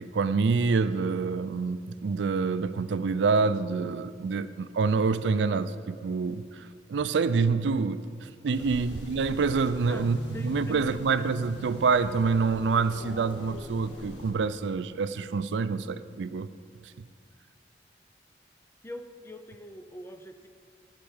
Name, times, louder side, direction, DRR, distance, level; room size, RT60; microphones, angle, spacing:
voice 1, 0.0-16.5 16.8-16.9, right 4 dB, 85° right, 14 dB, 0.4 m, -27 dB
sound 1, 8.5-14.3, equal, 85° left, 1.7 m, -42 dB
voice 2, 8.6-9.1 9.9-11.0 18.8-20.5, left 1 dB, 15° left, 7 dB, 0.5 m, -44 dB
10.5 x 5.7 x 8.0 m, 2.1 s
head